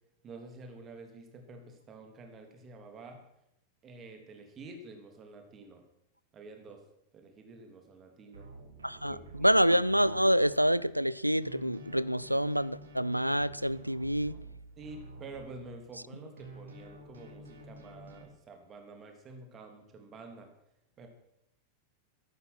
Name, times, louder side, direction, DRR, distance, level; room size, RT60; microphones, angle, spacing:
voice 1, 0.2-3.2 3.8-5.9 6.3-6.8 7.1-8.5 9.1-9.6 14.8-20.5 21.0-21.1, right 3 dB, 25° right, 3.1 m, -49 dB
sound 1, 8.3-11.1 11.4-16.1 16.4-18.2, right 2 dB, 70° right, 2.7 m, -50 dB
voice 2, 8.8-14.4, equal, 90° right, 0.4 m, -27 dB
14.0 x 12.0 x 6.0 m
figure-of-eight pair, 90°, 0 cm